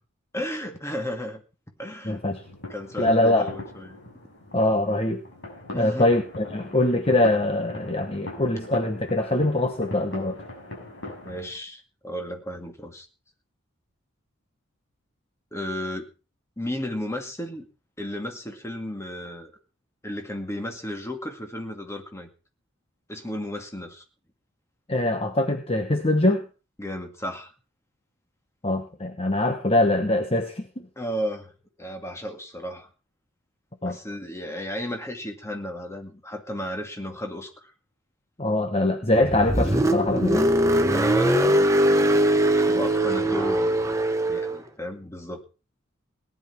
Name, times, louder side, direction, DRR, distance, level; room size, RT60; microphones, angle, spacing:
voice 1, 0.3-1.4 1.8-2.2 2.7-4.0 5.7-6.2 11.2-13.1 15.5-16.1 16.6-17.7 18.0-19.5 20.0-22.3 23.1-24.0 26.8-27.5 31.0-31.5 31.8-32.9 33.8-37.7 40.9-41.7 42.6-44.0 44.3-45.4, left 1 dB, 15° left, 4 dB, 2.1 m, -34 dB
voice 2, 2.0-2.4 3.0-3.5 4.5-5.2 5.7-10.4 24.9-26.4 28.6-30.9 33.8-34.0 38.4-40.5, left 1 dB, 30° left, 6 dB, 1.1 m, -23 dB
sound 1, 2.1-11.4, left 2 dB, 60° left, 6.2 m, -41 dB
Car, 39.1-44.6, right 1 dB, 15° right, 1.1 m, -21 dB
18.0 x 11.0 x 4.5 m, 0.34 s
head